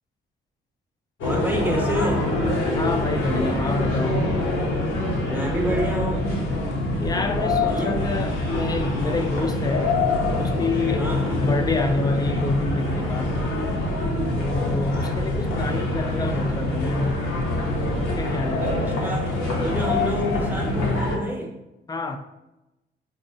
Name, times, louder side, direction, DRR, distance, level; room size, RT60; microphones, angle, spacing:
sound 1, 1.2-21.2, left 2 dB, 90° left, 0.8 m, -25 dB
voice 1, 1.2-2.3 5.3-6.3 7.6-8.0 11.0-11.5 18.6-21.6, equal, 10° right, -1 dB, 0.8 m, -28 dB
voice 2, 2.8-4.2 7.0-9.9 10.4-13.4 14.4-17.2 18.2-19.0 21.9-22.2, left 3 dB, 20° left, 6 dB, 0.4 m, -27 dB
5.1 x 2.0 x 2.7 m, 0.94 s
cardioid pair, 90°, 20 cm